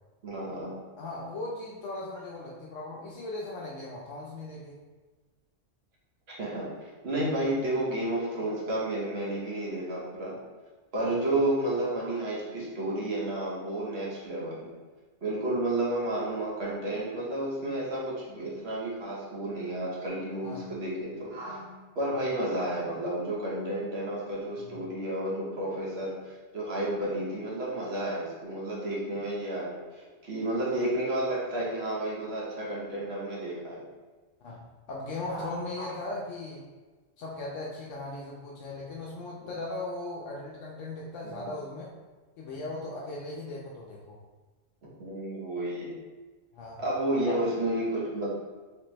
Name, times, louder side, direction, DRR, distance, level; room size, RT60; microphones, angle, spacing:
voice 1, 0.2-0.8 6.4-10.4 10.9-14.7 15.2-21.7 22.0-33.8 35.3-35.9 41.2-41.5 44.8-45.9 46.8-48.3, right 1 dB, 60° right, -5 dB, 1.2 m, -31 dB
voice 2, 1.0-4.8 11.0-11.3 20.4-20.7 24.6-24.8 34.4-36.6 37.2-41.9 42.4-44.2 46.5-46.8 47.3-47.4, left 2 dB, 80° left, -3 dB, 0.9 m, -38 dB
3.3 x 3.3 x 3.0 m, 1.3 s
omnidirectional pair, 1.3 m